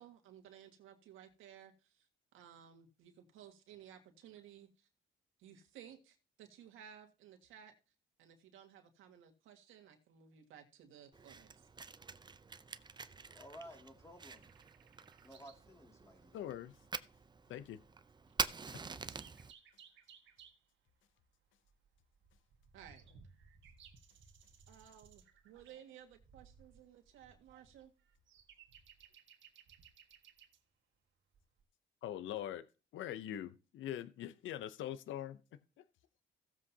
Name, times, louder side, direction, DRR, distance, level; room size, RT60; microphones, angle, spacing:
voice 1, 0.0-4.9 5.4-7.7 8.2-11.7 22.7-23.0 24.7-27.9, right 9 dB, 90° right, 1.8 m, -57 dB
Fire, 11.1-19.5, right 4 dB, 20° right, 0.6 m, -45 dB
voice 2, 13.3-14.5 15.2-16.4, equal, 15° left, 2.5 m, -54 dB
sound 1, 14.2-15.7 16.0-16.1 16.8-16.9 17.0-17.4 17.9-18.0 18.2-20.7 21.3-30.6 31.3-31.6, right 6 dB, 70° right, 1.6 m, -62 dB
voice 3, 16.3-16.8 17.5-17.8 32.0-32.6 32.9-35.8, left 11 dB, 80° left, 0.7 m, -43 dB
16.5 x 7.5 x 2.8 m
cardioid pair, 90°, 20 cm